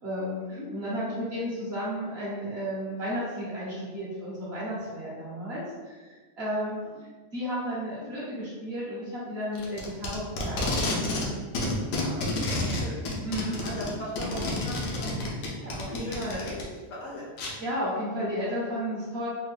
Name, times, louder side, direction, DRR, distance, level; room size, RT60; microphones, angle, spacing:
voice 1, 0.0-6.8 7.3-10.7 12.6-12.8 13.2-13.6 15.6-16.4 17.6-19.3, equal, 50° right, -7 dB, 0.8 m, -33 dB
Packing tape duct tape, 9.5-11.3 11.5-16.6 17.4-17.5, left 2 dB, 85° left, 1.3 m, -29 dB
voice 2, 12.0-13.0 13.6-15.2 15.9-17.3, left 1 dB, 65° left, -4 dB, 0.9 m, -39 dB
3.4 x 2.2 x 3.3 m, 1.4 s
omnidirectional pair, 1.7 m